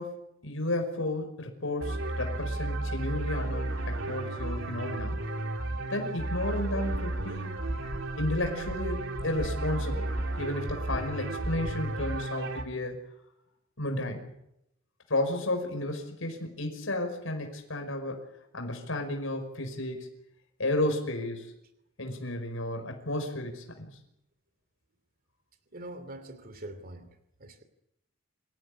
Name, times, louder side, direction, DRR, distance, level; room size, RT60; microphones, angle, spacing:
voice 1, 0.0-5.2 5.9-7.6 8.2-10.1 10.4-13.0 13.8-14.2 15.1-18.2 18.5-20.1 20.6-21.5 22.0-23.9, left 1 dB, 85° left, 4 dB, 5.4 m, -33 dB
sound 1, 1.8-12.6, right 2 dB, 75° right, 3.1 m, -33 dB
sound 2, 6.9-7.2 7.6-8.0 8.4-8.8 9.1-9.5 9.9-10.2 10.6-11.0 11.4-11.7, equal, ahead, 7.9 m, -36 dB
voice 2, 25.7-27.1 27.4-27.6, right 1 dB, 50° right, 10 dB, 2.7 m, -43 dB
27.0 x 16.0 x 9.9 m, 0.82 s
head